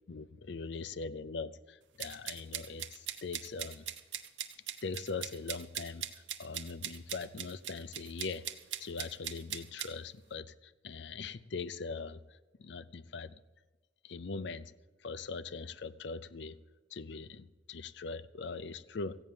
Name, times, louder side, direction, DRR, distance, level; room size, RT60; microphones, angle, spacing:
voice 1, 0.1-3.9 4.8-8.5 8.8-13.3 14.0-14.7 15.0-16.6 16.9-19.2, left 4 dB, 65° left, 16 dB, 0.5 m, -41 dB
sound 1, 2.0-9.9, right 11 dB, 70° right, 0.9 m, -40 dB
15.0 x 9.0 x 7.3 m, 1.2 s
head